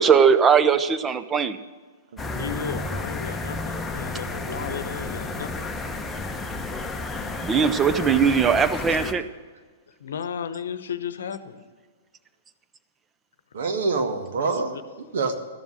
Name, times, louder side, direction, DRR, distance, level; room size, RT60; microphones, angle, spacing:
voice 1, 0.0-1.6 7.4-9.2, right 6 dB, 20° right, 12 dB, 0.7 m, -19 dB
sound 1, 2.2-9.1, left 2 dB, 10° left, 1.0 m, -31 dB
voice 2, 2.3-5.7 8.9-9.0 10.0-11.6 14.5-14.8, left 7 dB, 70° left, 12 dB, 0.9 m, -34 dB
voice 3, 13.5-15.4, right 4 dB, 65° right, 6 dB, 1.6 m, -26 dB
13.0 x 7.2 x 7.8 m, 1.5 s
hypercardioid pair, 110°, 0 cm